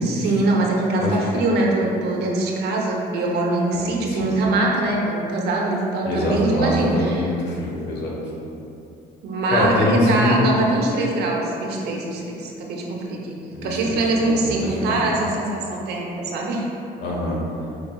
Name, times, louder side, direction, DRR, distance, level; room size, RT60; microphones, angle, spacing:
voice 1, 0.1-7.3 9.2-16.7, right 2 dB, 75° right, -2 dB, 0.8 m, -23 dB
voice 2, 6.0-8.2 9.5-10.4 13.5-14.6 14.8-15.0 17.0-17.4, left 1 dB, 85° left, -2 dB, 0.9 m, -24 dB
5.0 x 4.3 x 2.3 m, 2.8 s
cardioid pair, 110°, 17 cm